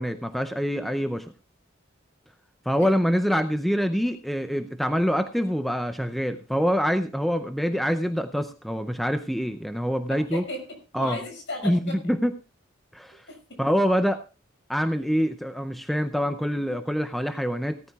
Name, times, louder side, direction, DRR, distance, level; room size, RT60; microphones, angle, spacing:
voice 1, 0.0-1.3 2.7-10.4 10.9-11.2 11.6-12.3 12.9-13.3 13.6-14.2 14.7-17.8, equal, ahead, 8 dB, 0.5 m, -25 dB
voice 2, 10.1-12.0 13.3-13.6, left 2 dB, 65° left, 5 dB, 6.1 m, -36 dB
17.5 x 14.0 x 2.3 m, 0.33 s
head